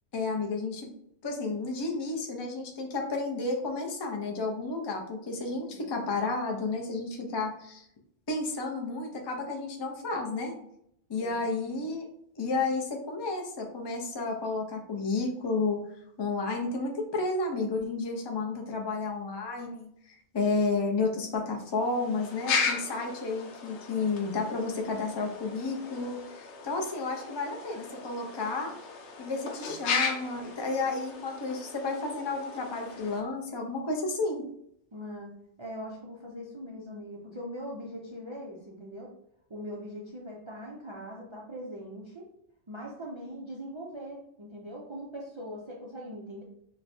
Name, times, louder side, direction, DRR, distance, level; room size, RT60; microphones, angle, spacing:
voice 1, 0.1-0.9 1.2-7.8 8.3-10.5 11.1-12.0 12.4-15.8 16.2-28.7 29.2-34.4, left 3 dB, 40° left, 2 dB, 0.4 m, -32 dB
voice 2, 11.2-11.8 34.9-39.1 39.5-42.3 42.7-46.4, equal, 40° right, -3 dB, 0.4 m, -41 dB
sound 1, 21.7-33.2, left 5 dB, 75° left, 0.9 m, -36 dB
3.0 x 2.2 x 4.1 m, 0.72 s
omnidirectional pair, 1.2 m